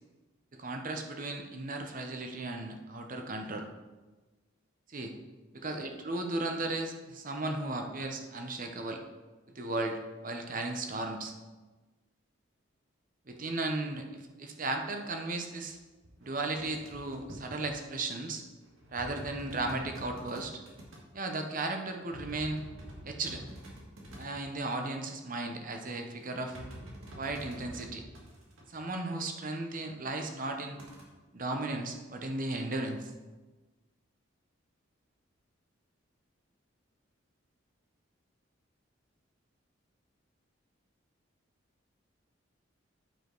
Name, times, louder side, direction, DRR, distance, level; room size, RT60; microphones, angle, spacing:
voice 1, 0.5-3.7 4.9-5.1 5.6-9.0 9.5-11.3 13.3-15.8 16.2-18.4 18.9-20.5 21.1-22.6 23.0-23.4 24.2-26.6 27.2-28.0 28.7-30.8 31.3-33.1, right 2 dB, 40° right, 4 dB, 0.9 m, -35 dB
sound 1, 15.7-15.8 16.0-17.7 18.6-21.0 21.8-24.7 26.2-28.7 30.8-31.0, equal, 90° right, 1.9 m, -47 dB
9.2 x 5.0 x 4.6 m, 1.2 s
head